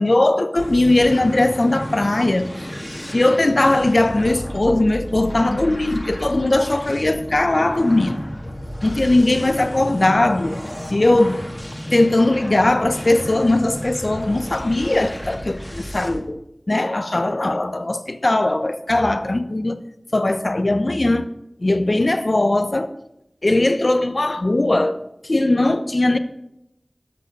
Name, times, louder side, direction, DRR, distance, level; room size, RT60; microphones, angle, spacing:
voice 1, 0.0-2.7 3.1-8.2 8.8-10.6 10.9-11.5 11.9-16.4 16.7-19.8 20.1-21.2 21.6-22.9 23.4-25.0 25.2-26.2, left 2 dB, 60° left, 0.8 m, -19 dB
sound 1, 0.6-16.2, equal, 25° left, 1.8 m, -33 dB
13.0 x 6.8 x 5.3 m
wide cardioid pair, 45°, 0 cm